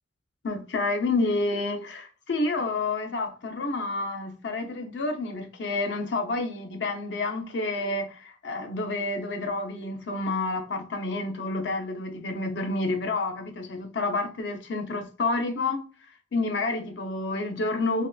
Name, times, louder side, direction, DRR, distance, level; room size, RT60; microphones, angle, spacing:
voice 1, 0.4-15.9 16.3-18.1, left 2 dB, 70° left, 0.6 m, -29 dB
3.5 x 2.3 x 2.3 m
head